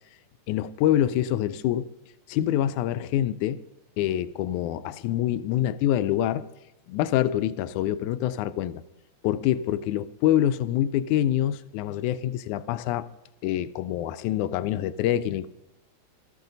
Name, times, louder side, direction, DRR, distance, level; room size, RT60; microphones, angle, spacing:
voice 1, 0.5-1.9 2.3-3.6 4.0-6.4 6.9-8.8 9.2-13.1 13.4-15.5, left 12 dB, 85° left, 2.0 m, -25 dB
16.0 x 13.5 x 4.0 m
omnidirectional pair, 3.5 m